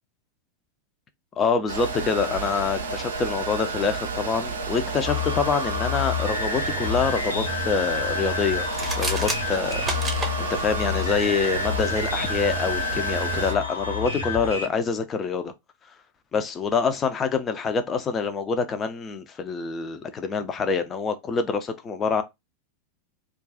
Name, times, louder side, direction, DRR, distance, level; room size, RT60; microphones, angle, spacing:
voice 1, 1.4-9.8 10.4-15.5 16.3-22.2, left 5 dB, 25° left, 0.5 m, -26 dB
sound 1, 1.7-13.5, right 4 dB, 70° right, 0.6 m, -31 dB
sound 2, 5.1-14.7, left 5 dB, 70° left, 0.8 m, -29 dB
sound 3, 8.6-10.3, right 2 dB, 15° right, 0.7 m, -30 dB
2.4 x 2.3 x 3.7 m
figure-of-eight pair, 90°, 0 cm